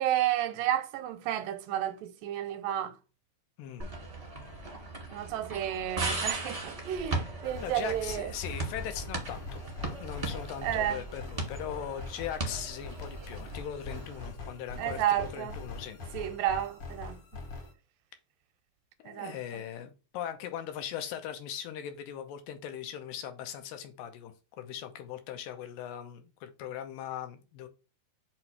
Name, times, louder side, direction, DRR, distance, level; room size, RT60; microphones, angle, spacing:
voice 1, 0.0-2.9 5.1-8.3 10.6-11.0 14.8-15.5 16.1-17.2 19.1-19.4, right 11 dB, 85° right, 2.2 m, -31 dB
voice 2, 3.6-4.0 7.2-7.3 7.6-9.6 10.0-16.0 19.0-27.7, left 9 dB, 85° left, 2.5 m, -40 dB
sound 1, 3.8-14.3, right 2 dB, 20° right, 0.9 m, -38 dB
sound 2, 7.4-17.7, left 3 dB, 45° left, 2.1 m, -43 dB
6.1 x 3.0 x 5.7 m
omnidirectional pair, 4.0 m